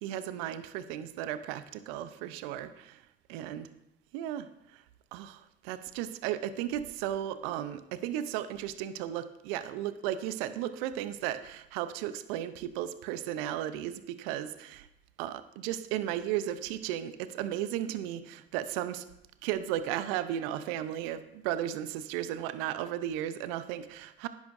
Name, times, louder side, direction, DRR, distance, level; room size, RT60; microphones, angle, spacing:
voice 1, 0.0-3.0 3.3-3.7 4.1-4.5 5.1-14.9 15.2-19.0 19.4-24.3, right 11 dB, 75° right, 12 dB, 0.7 m, -35 dB
11.0 x 10.5 x 2.6 m, 0.83 s
hypercardioid pair, 50°, 29 cm